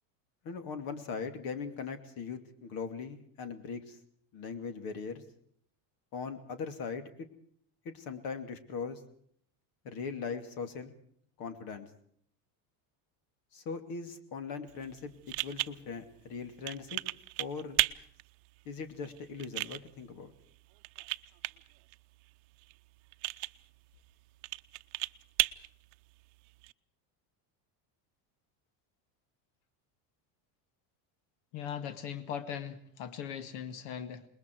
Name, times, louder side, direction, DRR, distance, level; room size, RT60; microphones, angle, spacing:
voice 1, 0.4-4.0 4.3-5.2 6.1-7.3 7.8-9.0 9.8-11.0 11.4-11.9 13.5-17.0 17.4-17.8 18.6-20.3, left 5 dB, 50° left, 9 dB, 2.7 m, -40 dB
sound 1, 14.7-26.7, right 24 dB, 70° right, 0.8 m, -37 dB
voice 2, 31.5-34.3, left 8 dB, 70° left, 11 dB, 2.0 m, -39 dB
27.5 x 21.0 x 4.7 m, 0.63 s
cardioid pair, 165°, 45 cm